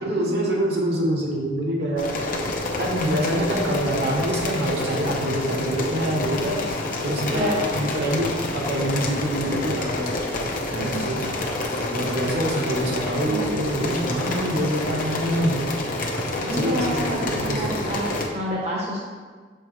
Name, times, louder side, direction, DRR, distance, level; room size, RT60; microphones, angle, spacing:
voice 1, 0.0-2.2 2.8-6.7 7.0-10.1 10.7-11.2 11.9-15.6 16.2-17.8, right 1 dB, 65° right, -2 dB, 1.1 m, -26 dB
sound 1, 2.0-18.3, left 2 dB, 50° left, 0.7 m, -28 dB
voice 2, 7.3-7.6 10.7-11.0 11.8-12.0 13.2-13.5 16.4-19.0, right 1 dB, 35° right, -4 dB, 0.9 m, -29 dB
6.7 x 4.6 x 3.1 m, 1.5 s
head